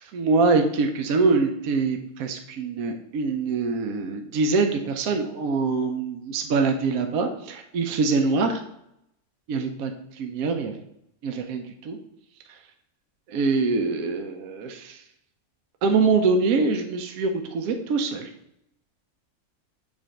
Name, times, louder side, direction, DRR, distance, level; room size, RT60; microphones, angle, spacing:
voice 1, 0.0-8.6 9.5-9.9 10.2-10.8 11.2-12.0 13.3-15.0 15.8-18.3, right 4 dB, 75° right, 4 dB, 1.1 m, -24 dB
7.3 x 2.5 x 5.0 m, 0.78 s
omnidirectional pair, 1.6 m